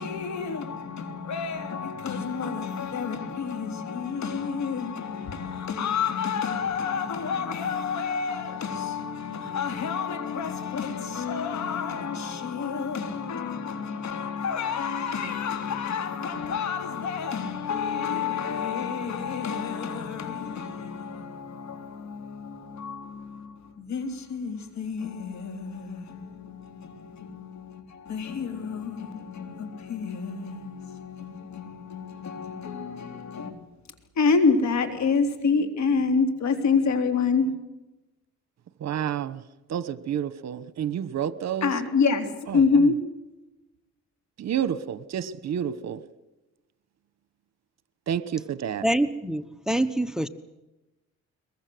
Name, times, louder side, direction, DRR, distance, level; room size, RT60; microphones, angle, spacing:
voice 1, 0.0-33.5 34.2-37.5 41.6-43.0, left 5 dB, 65° left, 3.6 m, -28 dB
voice 2, 38.8-39.4 39.7-41.7 42.5-42.6 44.4-46.0 48.1-48.8, right 9 dB, 60° right, 1.2 m, -29 dB
voice 3, 48.8-50.3, right 1 dB, ahead, 1.1 m, -25 dB
22.5 x 22.0 x 7.9 m
cardioid pair, 90°, 30 cm